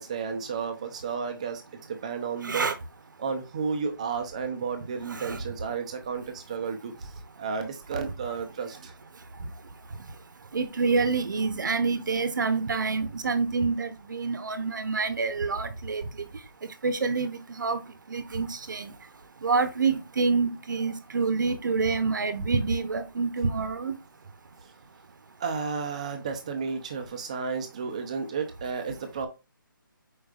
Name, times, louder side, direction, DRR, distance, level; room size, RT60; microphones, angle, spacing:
voice 1, 0.0-1.6 1.9-2.7 3.2-8.9 25.4-29.3, right 5 dB, 20° right, 0.5 m, -32 dB
voice 2, 2.4-2.7 5.1-5.4 10.5-16.0 16.8-17.8 18.1-18.9 19.4-23.9, right 4 dB, 60° right, 0.7 m, -27 dB
4.8 x 4.6 x 2.4 m
hypercardioid pair, 170°, 12 cm